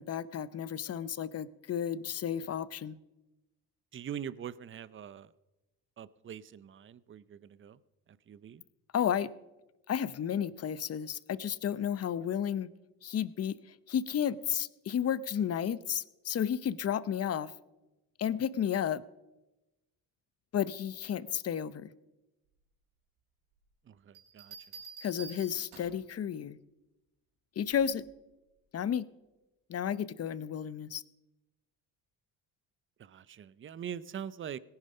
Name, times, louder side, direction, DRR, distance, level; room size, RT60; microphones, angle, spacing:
voice 1, 0.0-3.0 8.9-9.3 9.9-12.7 13.0-13.6 13.9-17.5 18.2-19.0 20.5-21.9 25.0-26.6 27.6-28.0 28.7-29.1 29.7-31.0, left 9 dB, 40° left, 17 dB, 0.7 m, -32 dB
voice 2, 3.9-5.3 6.0-7.8 8.3-8.6 23.9-24.5 33.0-34.6, right 9 dB, 35° right, 18 dB, 0.6 m, -43 dB
sound 1, 24.1-26.1 27.7-28.0, right 6 dB, 90° right, 4.6 m, -49 dB
18.0 x 10.5 x 5.5 m, 1.0 s
cardioid pair, 105°, 38 cm